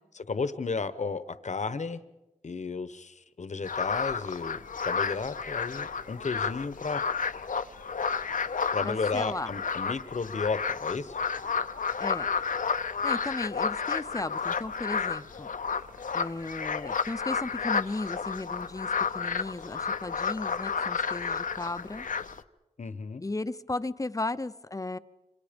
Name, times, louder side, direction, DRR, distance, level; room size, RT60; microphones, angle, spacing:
voice 1, 0.2-2.0 2.4-7.0 8.7-11.2 22.8-23.2, left 4 dB, 60° left, 12 dB, 1.1 m, -33 dB
sound 1, 3.6-22.4, left 5 dB, 75° left, 0.8 m, -31 dB
voice 2, 8.8-9.5 12.0-12.3 13.0-15.5 16.1-22.1 23.2-25.0, left 2 dB, 25° left, 13 dB, 0.8 m, -35 dB
27.0 x 26.0 x 5.2 m, 1.0 s
wide cardioid pair, 80°, 14 cm